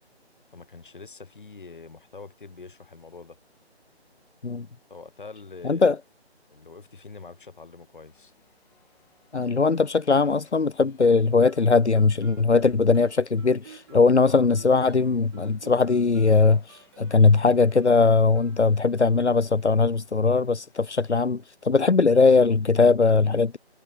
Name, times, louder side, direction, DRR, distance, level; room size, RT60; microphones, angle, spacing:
voice 1, 0.5-3.4 4.9-5.9 6.5-8.3 13.9-14.5, left 4 dB, 50° left, 6.1 m, -44 dB
voice 2, 5.6-6.0 9.3-23.6, left 4 dB, 90° left, 0.9 m, -20 dB
sound 1, 8.1-21.3, left 11 dB, 5° left, 5.9 m, -66 dB
Guitar, 11.4-19.1, right 9 dB, 25° right, 2.9 m, -52 dB
figure-of-eight pair, 155°, 33 cm